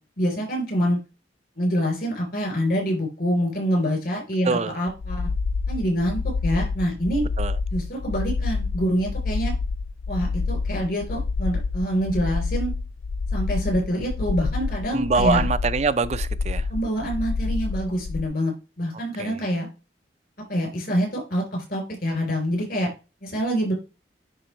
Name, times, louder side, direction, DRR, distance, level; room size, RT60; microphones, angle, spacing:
voice 1, 0.2-1.0 1.6-5.3 5.7-7.2 7.7-9.5 10.1-12.7 13.3-15.5 16.7-19.7 20.5-22.9 23.2-23.7, equal, 55° left, 4.0 m, -26 dB
voice 2, 4.4-4.8 7.4-7.6 14.9-16.7 19.2-19.4, right 4 dB, 40° right, 0.4 m, -24 dB
sound 1, 4.9-18.3, left 4 dB, 80° left, 0.4 m, -28 dB
10.0 x 3.9 x 3.2 m
head